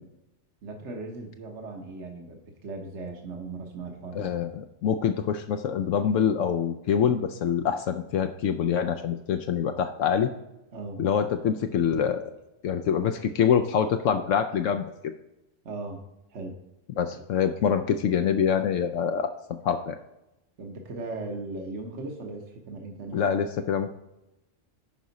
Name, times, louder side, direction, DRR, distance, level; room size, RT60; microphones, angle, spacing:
voice 1, 0.6-4.3 10.7-11.0 15.6-16.0 16.3-16.6 17.1-17.2 20.6-23.2, right 3 dB, 65° right, 2 dB, 1.4 m, -38 dB
voice 2, 4.1-10.3 11.0-12.3 12.6-14.9 17.0-19.3 19.6-20.0 23.1-23.9, left 8 dB, 75° left, 7 dB, 0.9 m, -25 dB
10.5 x 4.9 x 4.0 m, 0.91 s
omnidirectional pair, 1.3 m